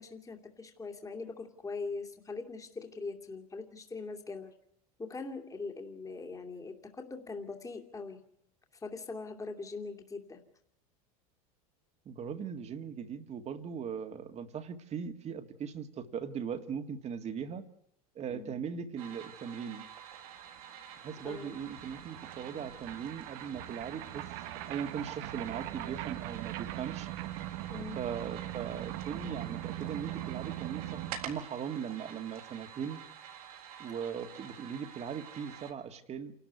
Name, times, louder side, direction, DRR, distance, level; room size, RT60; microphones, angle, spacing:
voice 1, 0.0-4.5 5.0-8.2 8.8-10.4 18.3-18.6 21.2-21.5 27.7-28.0, left 4 dB, 20° left, 4 dB, 2.5 m, -41 dB
voice 2, 12.1-17.6 18.2-19.9 21.0-27.1 28.0-33.0 33.8-36.3, right 7 dB, 35° right, 8 dB, 2.0 m, -39 dB
sound 1, 19.0-35.7, right 9 dB, 80° right, 3.8 m, -49 dB
sound 2, 20.3-20.4 20.5-31.4, right 15 dB, 60° right, 1.2 m, -41 dB
27.5 x 13.0 x 9.5 m, 0.75 s
hypercardioid pair, 100°, 19 cm